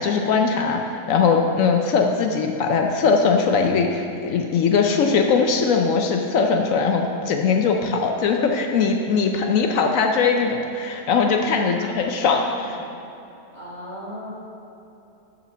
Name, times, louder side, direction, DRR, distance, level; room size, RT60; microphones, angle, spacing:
voice 1, 0.0-12.8, left 5 dB, 70° left, 3 dB, 1.0 m, -20 dB
voice 2, 11.6-11.9 12.4-12.8 13.5-14.3, equal, 30° right, -6 dB, 1.7 m, -38 dB
6.7 x 5.9 x 6.1 m, 2.9 s
omnidirectional pair, 1.5 m